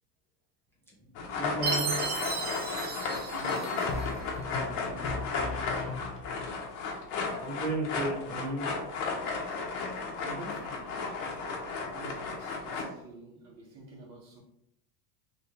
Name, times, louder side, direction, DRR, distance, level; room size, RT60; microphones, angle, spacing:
sound 1, 1.1-12.8, left 4 dB, 65° left, 1.2 m, -34 dB
sound 2, 1.2-1.8 3.9-6.5, left 3 dB, 30° left, 0.7 m, -38 dB
voice 1, 1.2-1.9 7.4-8.7, right 1 dB, 5° left, 1.4 m, -33 dB
Chime, 1.6-4.1, right 5 dB, 25° right, 0.3 m, -34 dB
voice 2, 3.3-5.2 10.2-11.1 11.9-14.4, right 2 dB, 60° right, 1.4 m, -47 dB
3.4 x 2.6 x 4.3 m
supercardioid pair, 145°, 48 cm